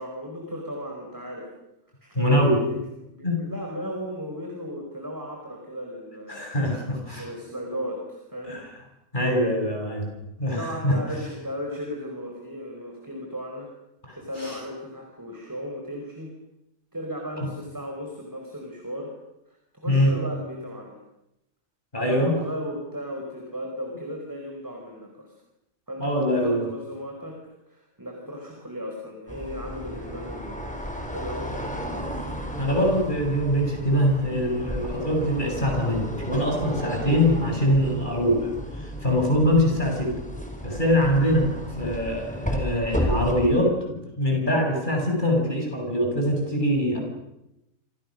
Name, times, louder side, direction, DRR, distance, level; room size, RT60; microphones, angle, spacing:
voice 1, 0.0-1.5 2.0-2.8 3.1-6.5 7.1-8.6 10.5-13.7 14.1-16.3 16.9-19.1 19.5-21.0 21.9-25.3 25.9-27.4 27.7-31.7, equal, 15° right, 1 dB, 4.9 m, -35 dB
voice 2, 2.1-2.6 3.2-3.4 6.3-7.3 8.5-8.6 9.1-10.1 10.4-11.0 14.1-14.6 19.9-20.1 21.9-22.3 26.0-26.6 32.6-38.5 38.8-40.2 40.6-41.5 41.8-47.0, equal, 35° left, 1 dB, 7.8 m, -23 dB
sound 1, 29.3-43.6, equal, 5° left, 4.9 m, -33 dB
29.0 x 27.0 x 6.6 m, 0.88 s
omnidirectional pair, 1.5 m